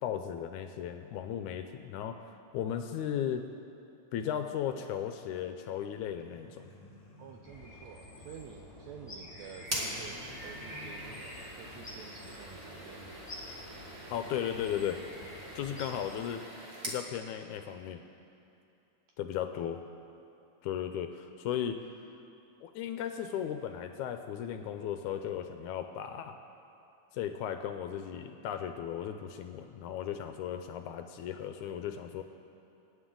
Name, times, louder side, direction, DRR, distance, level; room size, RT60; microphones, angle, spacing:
voice 1, 0.0-3.4 4.1-6.7 14.1-15.0 15.5-18.0 19.2-19.8 20.6-21.8 22.6-26.4 27.1-32.2, left 9 dB, 80° left, 7 dB, 1.9 m, -36 dB
sound 1, 5.9-8.6 9.0-11.9, left 3 dB, 55° left, 0.4 m, -56 dB
voice 2, 7.2-13.3 13.5-13.6 15.9-16.1 19.2-19.3, right 7 dB, 80° right, 3 dB, 1.6 m, -50 dB
sound 2, 7.4-16.2, equal, 10° left, 3.5 m, -48 dB
sound 3, 9.6-17.0, right 1 dB, 30° right, 1.5 m, -43 dB
23.0 x 9.6 x 3.8 m, 2.8 s
omnidirectional pair, 3.8 m